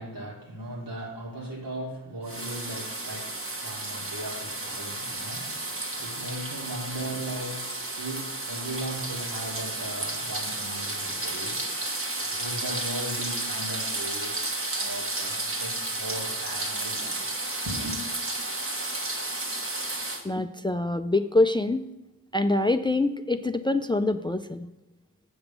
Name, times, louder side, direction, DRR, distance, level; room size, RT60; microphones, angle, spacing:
voice 1, 0.0-11.7 12.3-14.5 14.7-17.2 17.7-18.0, right 1 dB, 75° right, -2 dB, 2.1 m, -38 dB
sound 1, 2.2-20.2, right 2 dB, 40° right, 1.3 m, -32 dB
voice 2, 20.2-21.9 22.3-24.7, left 2 dB, 15° left, 9 dB, 0.3 m, -25 dB
8.0 x 6.0 x 5.3 m, 1.0 s
wide cardioid pair, 60°, 35 cm